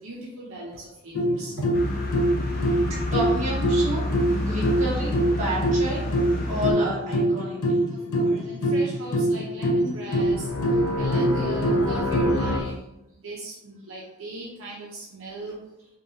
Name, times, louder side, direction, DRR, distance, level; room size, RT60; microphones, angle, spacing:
voice 1, 0.0-1.8 8.1-10.5 10.9-12.9 13.2-15.6, right 2 dB, 65° right, -4 dB, 0.7 m, -37 dB
sound 1, 1.1-12.6, equal, 85° left, 0.7 m, -24 dB
sound 2, 1.7-6.7, left 1 dB, 45° left, 0.9 m, -29 dB
voice 2, 3.1-4.0 4.4-6.1 6.4-7.8 8.3-9.0, equal, 35° right, -6 dB, 1.5 m, -30 dB
5.4 x 2.8 x 2.7 m, 0.86 s
head